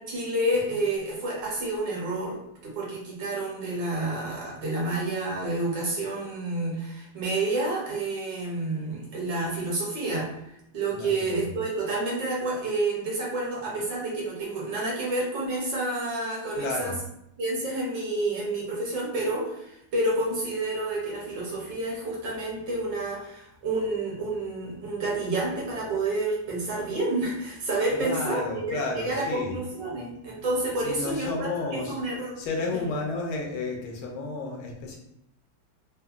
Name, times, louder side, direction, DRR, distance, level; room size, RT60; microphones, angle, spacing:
voice 1, 0.0-2.4 2.6-10.3 10.7-16.9 17.4-32.4 32.7-32.8, right 2 dB, 65° right, -4 dB, 1.4 m, -29 dB
voice 2, 10.9-11.5 16.5-16.9 27.9-29.6 30.8-32.0 32.4-35.0, left 3 dB, 85° left, 0 dB, 1.5 m, -32 dB
3.6 x 2.1 x 2.3 m, 0.78 s
omnidirectional pair, 2.2 m